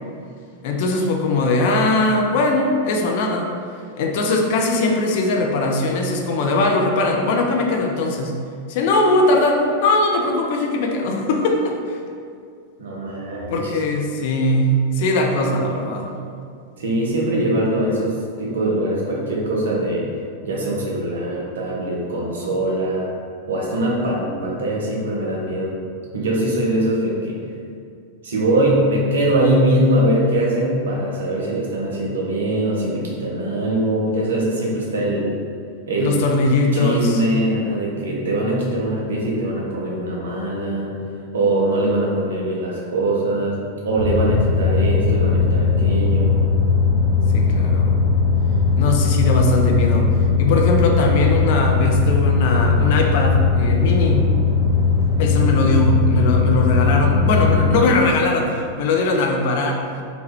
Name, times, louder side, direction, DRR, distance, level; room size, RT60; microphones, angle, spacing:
voice 1, 0.6-3.5 4.0-8.3 8.7-12.0 13.5-16.1 36.0-37.2 47.3-48.0 48.8-50.1 50.4-54.2 55.2-59.8, left 2 dB, 50° left, 2 dB, 0.4 m, -20 dB
voice 2, 12.8-13.8 16.8-20.1 20.4-23.1 23.5-25.8 26.1-27.4 28.2-35.3 35.9-36.2 36.7-40.9 41.3-43.6 43.8-46.4, right 1 dB, 65° right, -3 dB, 0.6 m, -22 dB
sound 1, 43.9-57.7, left 4 dB, 90° left, 1.1 m, -18 dB
2.9 x 2.2 x 3.2 m, 2.2 s
figure-of-eight pair, 90°, 0 cm